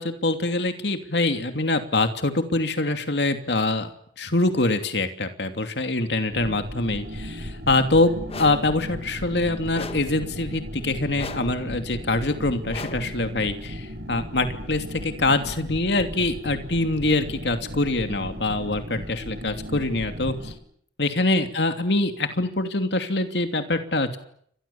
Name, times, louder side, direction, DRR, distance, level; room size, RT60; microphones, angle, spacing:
voice 1, 0.0-3.9 4.2-8.1 8.4-20.5 21.0-24.2, left 2 dB, 65° left, 7 dB, 2.8 m, -24 dB
sound 1, 6.3-20.5, equal, 60° right, 7.2 m, -36 dB
sound 2, 8.3-8.7 9.7-10.2 11.2-11.6 12.7-13.2, left 3 dB, 35° left, 1.4 m, -37 dB
30.0 x 24.5 x 7.2 m, 0.67 s
head